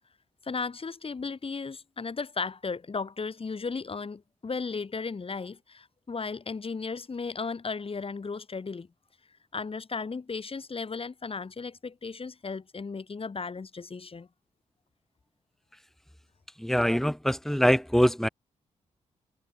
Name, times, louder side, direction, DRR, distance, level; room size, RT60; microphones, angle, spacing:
voice 1, 0.4-8.9 9.5-14.3, left 4 dB, 45° left, 5.0 m, -35 dB
voice 2, 16.6-18.3, equal, ahead, 4.1 m, -23 dB
cardioid pair, 60°, 14 cm